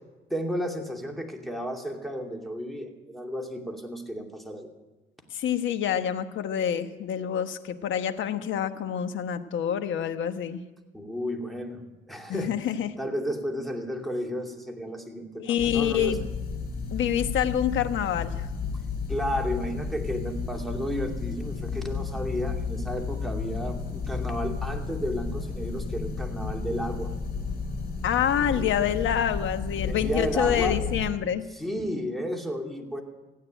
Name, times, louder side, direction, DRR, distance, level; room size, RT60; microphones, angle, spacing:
voice 1, 0.3-4.7 10.9-12.6 13.0-16.2 19.1-27.1 28.3-28.8 29.8-30.8 31.5-33.0, equal, ahead, 2 dB, 2.7 m, -33 dB
voice 2, 5.3-10.6 12.3-12.9 15.4-16.3 16.9-18.5 28.0-31.5, left 9 dB, 75° left, 9 dB, 1.2 m, -27 dB
sound 1, 15.6-31.1, left 5 dB, 50° left, 5.1 m, -32 dB
16.0 x 9.6 x 9.1 m, 1.1 s
cardioid pair, 90°, 20 cm